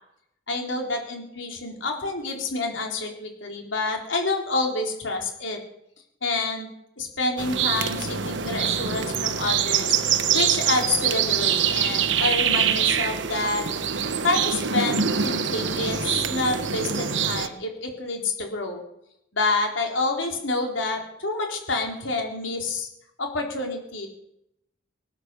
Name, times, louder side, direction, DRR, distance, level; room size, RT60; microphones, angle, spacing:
voice 1, 0.5-5.6 6.2-6.7 7.0-10.0 10.3-13.6 14.2-18.8 19.3-22.9 23.2-24.1, left 3 dB, 80° left, 2 dB, 3.6 m, -28 dB
sound 1, 7.4-17.5, right 7 dB, 70° right, 1.1 m, -24 dB
19.5 x 9.6 x 6.8 m, 0.78 s
head